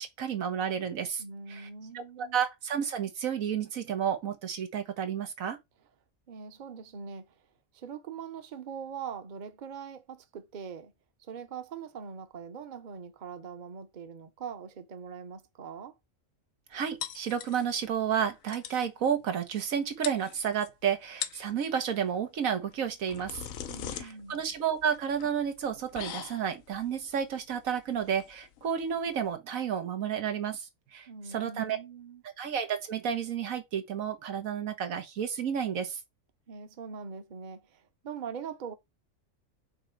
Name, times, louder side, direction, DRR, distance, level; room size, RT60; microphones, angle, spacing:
voice 1, 0.0-1.2 1.5-1.7 1.9-5.6 16.7-23.4 23.9-31.8 32.4-36.0, right 8 dB, 90° right, 1.5 m, -31 dB
voice 2, 1.2-2.4 6.3-7.5 7.7-10.9 11.2-16.0 23.7-24.4 31.1-32.2 36.5-38.7, right 6 dB, 40° right, 0.8 m, -42 dB
sound 1, 17.0-17.9 18.2-18.3 18.5-18.9 19.7-19.8 20.0-20.7 21.1-21.5 22.7-29.4, left 9 dB, 85° left, 1.2 m, -41 dB
5.5 x 3.9 x 4.6 m
omnidirectional pair, 1.4 m